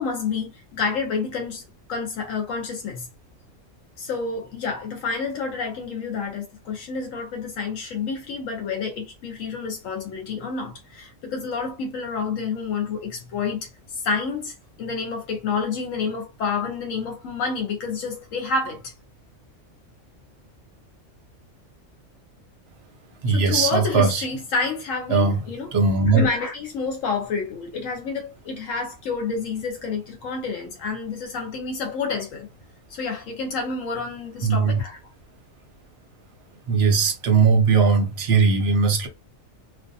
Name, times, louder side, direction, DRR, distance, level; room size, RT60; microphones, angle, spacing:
voice 1, 0.0-1.6 1.9-3.1 4.0-18.9 23.3-25.7 26.1-32.5 32.9-35.0, left 4 dB, 80° left, 1.0 m, -29 dB
voice 2, 23.2-24.2 25.1-25.4 25.7-26.3 34.4-34.8 36.7-39.1, right 5 dB, 60° right, 0.8 m, -19 dB
2.5 x 2.2 x 2.6 m
omnidirectional pair, 1.3 m